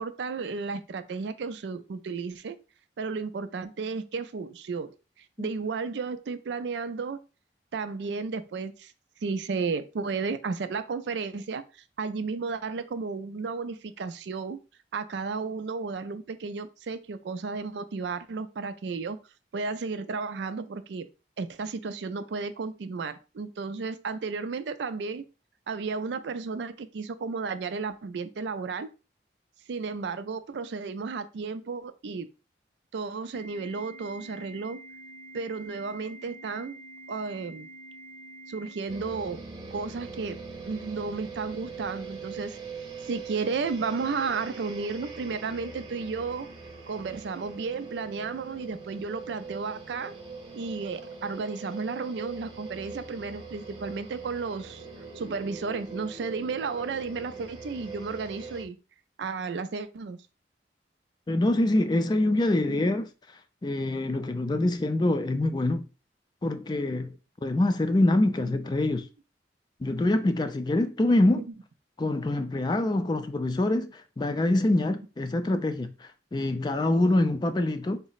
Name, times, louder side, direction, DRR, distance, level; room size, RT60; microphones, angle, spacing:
voice 1, 0.0-2.6 3.0-4.9 5.4-7.2 7.7-8.9 9.2-11.6 12.0-14.6 14.9-19.2 19.5-21.1 21.4-25.2 25.7-28.9 29.7-32.3 32.9-34.8 35.3-36.8 37.1-37.7 38.5-39.4 39.7-40.4 40.7-42.6 43.0-46.5 46.9-50.1 50.5-54.9 55.1-58.8 59.2-60.2 62.7-62.9 71.3-71.4, right 4 dB, 75° right, 0.4 m, -33 dB
Organ, 33.3-39.4, right 1 dB, 65° left, 0.7 m, -47 dB
sound 1, 38.9-58.6, right 4 dB, 25° right, 0.8 m, -42 dB
voice 2, 61.3-63.1 63.6-65.9 66.4-67.1 67.4-69.1 69.8-71.4 72.0-78.0, left 1 dB, 25° left, 0.3 m, -25 dB
3.9 x 2.1 x 3.9 m
head